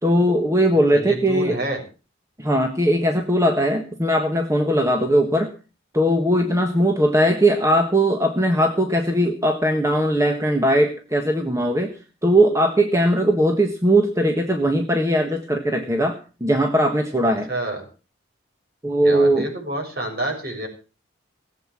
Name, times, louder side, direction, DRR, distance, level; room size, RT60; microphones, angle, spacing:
voice 1, 0.0-1.6 2.4-5.5 5.9-12.0 12.2-17.5 18.8-19.5, right 1 dB, 15° right, 4 dB, 1.5 m, -19 dB
voice 2, 0.9-1.8 17.5-17.8 19.0-20.7, right 1 dB, 50° right, 1 dB, 6.5 m, -28 dB
18.5 x 8.1 x 7.4 m, 0.35 s
head